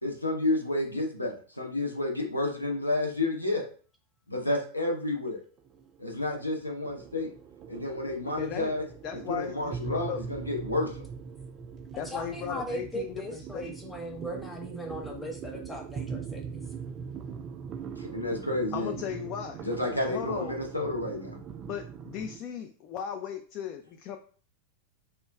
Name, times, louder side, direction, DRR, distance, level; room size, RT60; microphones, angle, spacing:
voice 1, 0.0-3.7 4.3-5.4 6.0-7.3 7.7-8.8 9.3-11.0 18.0-18.9 19.6-21.4, left 2 dB, 85° left, 1 dB, 0.7 m, -30 dB
sound 1, 5.6-22.4, right 6 dB, 30° right, 0.4 m, -41 dB
voice 2, 8.4-8.7 9.0-10.2 12.0-13.7 18.7-19.7 20.1-20.6 21.7-24.2, left 8 dB, 40° left, 5 dB, 0.3 m, -37 dB
voice 3, 12.0-16.6, equal, 10° left, 1 dB, 0.8 m, -38 dB
4.5 x 2.3 x 2.3 m, 0.41 s
figure-of-eight pair, 90°, 0 cm